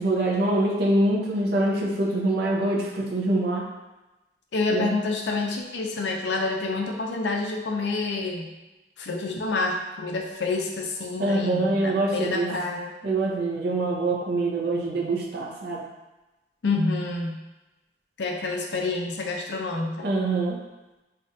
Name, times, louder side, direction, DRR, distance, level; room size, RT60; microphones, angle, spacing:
voice 1, 0.0-3.7 4.7-4.9 11.2-12.5 13.0-15.8 20.0-20.6, right 2 dB, 65° right, -4 dB, 0.8 m, -24 dB
voice 2, 4.5-8.5 9.0-12.9 16.6-17.4 18.2-20.1, left 3 dB, 75° left, 2 dB, 0.5 m, -28 dB
5.4 x 2.4 x 2.7 m, 1.0 s
head